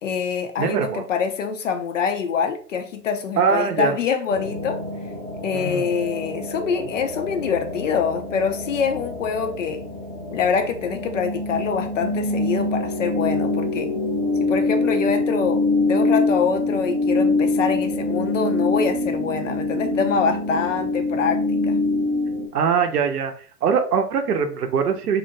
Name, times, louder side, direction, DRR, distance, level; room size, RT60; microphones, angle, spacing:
voice 1, 0.0-4.8 5.4-9.8 10.3-13.9 14.4-21.8, left 6 dB, 50° left, 0.5 m, -25 dB
voice 2, 0.6-1.0 3.4-4.0 5.5-5.9 22.5-23.3 23.6-25.2, right 6 dB, 65° right, 0.6 m, -22 dB
sound 1, 4.3-22.5, left 2 dB, 25° right, 0.3 m, -25 dB
2.5 x 2.1 x 2.6 m
figure-of-eight pair, 115°, 49 cm